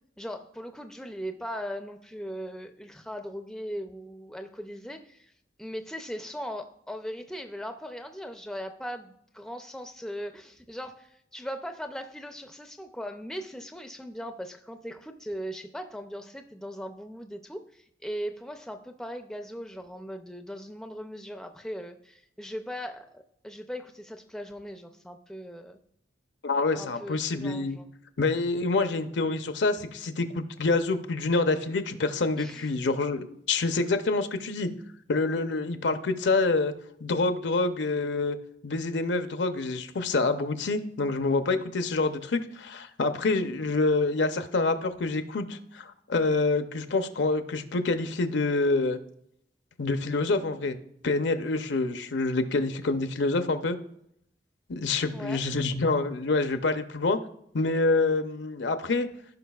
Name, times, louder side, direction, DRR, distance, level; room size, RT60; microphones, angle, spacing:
voice 1, 0.2-5.3 5.6-25.8 26.7-27.8 32.4-32.7 55.1-55.4, equal, 5° left, 6 dB, 0.4 m, -39 dB
voice 2, 26.4-27.8 28.2-34.7 35.1-36.7 37.0-38.4 38.6-49.0 49.8-50.8 51.0-53.8 54.7-57.2 57.5-59.1, left 3 dB, 75° left, 9 dB, 0.7 m, -27 dB
15.5 x 5.4 x 2.3 m, 0.75 s
head